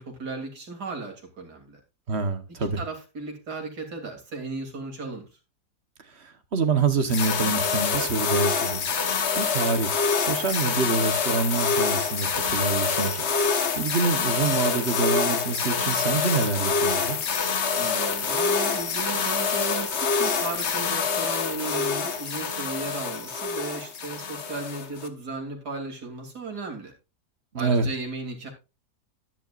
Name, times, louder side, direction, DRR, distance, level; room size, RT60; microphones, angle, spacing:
voice 1, 0.0-1.8 2.6-5.4 17.8-26.9 27.5-28.5, right 3 dB, 75° right, 3.4 m, -35 dB
voice 2, 2.1-2.8 6.0-17.2 27.5-27.9, right 4 dB, 45° right, 1.3 m, -27 dB
sound 1, 7.1-25.1, left 5 dB, 45° left, 1.3 m, -26 dB
11.5 x 10.5 x 2.4 m
omnidirectional pair, 1.7 m